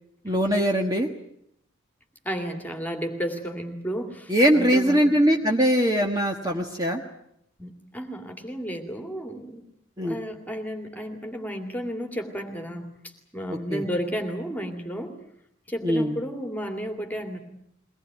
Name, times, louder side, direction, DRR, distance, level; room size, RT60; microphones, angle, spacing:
voice 1, 0.2-1.1 4.3-7.0 10.0-10.2 13.5-13.8 15.8-16.2, equal, 20° right, 2 dB, 1.5 m, -22 dB
voice 2, 2.2-5.2 7.6-9.6 10.0-12.9 13.3-15.1 15.7-17.4, equal, 10° left, 4 dB, 2.4 m, -32 dB
22.5 x 19.0 x 9.3 m, 0.75 s
head